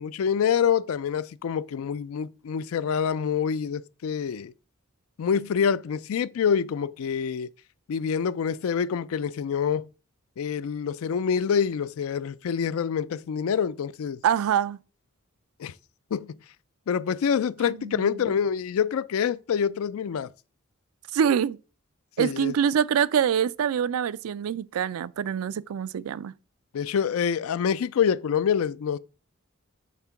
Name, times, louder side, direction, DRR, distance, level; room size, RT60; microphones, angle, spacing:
voice 1, 0.0-4.5 5.2-7.5 7.9-9.9 10.4-14.2 15.6-15.7 16.1-16.3 16.9-20.3 22.2-22.5 26.7-29.0, left 7 dB, 75° left, 0.4 m, -26 dB
voice 2, 14.2-14.8 17.6-18.2 21.1-21.6 22.2-26.3, right 8 dB, 85° right, 0.3 m, -25 dB
5.8 x 3.6 x 5.7 m
head